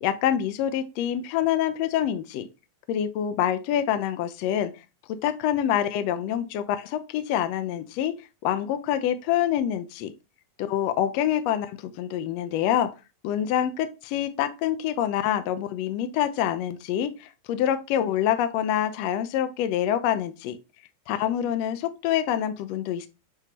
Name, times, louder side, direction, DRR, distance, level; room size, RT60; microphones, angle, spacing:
voice 1, 0.0-2.5 2.9-4.7 5.1-10.1 10.6-12.9 13.2-20.6 21.1-23.1, left 10 dB, 75° left, 10 dB, 1.5 m, -26 dB
9.0 x 3.7 x 2.9 m, 0.28 s
omnidirectional pair, 3.4 m